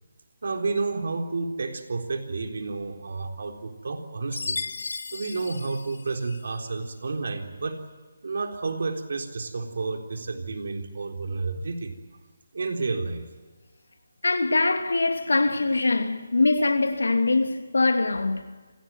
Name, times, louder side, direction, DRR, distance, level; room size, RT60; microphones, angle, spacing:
voice 1, 0.4-4.6 5.1-7.8 8.2-11.9 12.5-13.2, right 3 dB, 60° right, 3.9 m, -30 dB
Chime, 4.3-6.6, left 4 dB, 60° left, 1.3 m, -35 dB
voice 2, 14.2-18.4, left 3 dB, 75° left, 2.9 m, -23 dB
27.5 x 17.5 x 9.1 m
figure-of-eight pair, 155°, 0 cm